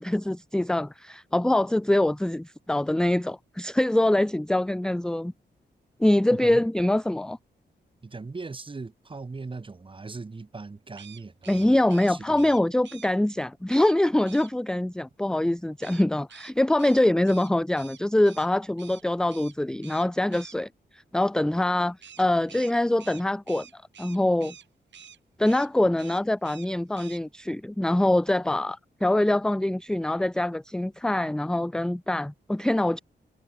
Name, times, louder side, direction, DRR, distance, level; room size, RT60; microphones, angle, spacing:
voice 1, 0.0-5.3 6.0-7.4 11.5-24.5 25.4-33.0, left 1 dB, 5° left, 0.5 m, -24 dB
voice 2, 6.3-6.6 8.0-12.5, right 3 dB, 30° right, 2.8 m, -39 dB
sound 1, 10.9-13.1 13.7-14.0 14.3-14.5 15.8-18.5 18.8-19.0 19.3-19.6 19.8-20.6 22.0-24.7 24.9-25.2 25.4-25.7 26.0-26.7 27.0-27.2, right 8 dB, 85° right, 3.6 m, -48 dB
wide cardioid pair, 130°, 18 cm